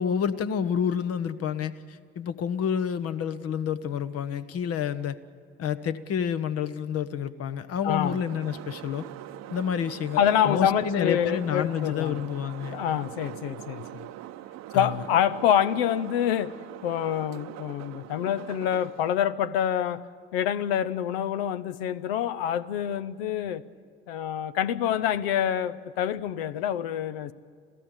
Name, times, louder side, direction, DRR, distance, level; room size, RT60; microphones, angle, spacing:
voice 1, 0.0-5.2 5.6-9.1 9.5-12.8 14.7-15.0, left 8 dB, 55° left, 1.1 m, -29 dB
voice 2, 7.8-8.2 10.2-12.4 12.7-14.1 14.7-20.1 20.3-23.6 24.1-27.3, left 9 dB, 75° left, 0.7 m, -26 dB
sound 1, 8.0-19.1, right 13 dB, 60° right, 0.9 m, -42 dB
27.5 x 15.5 x 9.0 m
hypercardioid pair, 55°, 30 cm